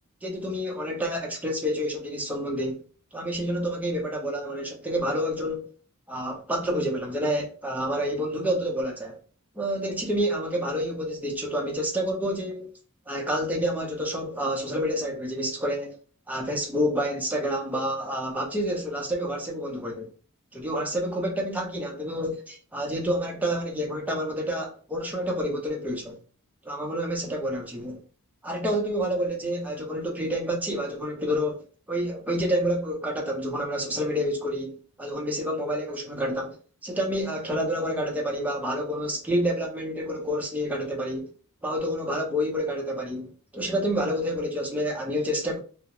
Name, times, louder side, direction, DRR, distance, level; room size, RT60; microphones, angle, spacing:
voice 1, 0.2-2.8 3.1-5.7 6.1-9.2 9.6-12.7 13.1-16.0 16.3-20.1 20.5-26.2 26.6-28.0 28.4-36.6 36.8-41.3 41.6-45.6, equal, 5° right, 0.5 m, -28 dB
2.3 x 2.0 x 2.8 m
head